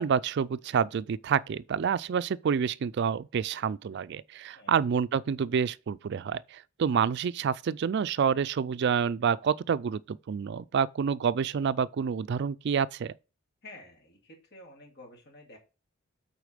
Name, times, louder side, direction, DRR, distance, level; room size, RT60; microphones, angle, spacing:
voice 1, 0.0-13.1, right 7 dB, 55° right, 0.3 m, -28 dB
voice 2, 13.6-15.6, left 2 dB, 50° left, 2.3 m, -50 dB
8.2 x 4.1 x 5.0 m
head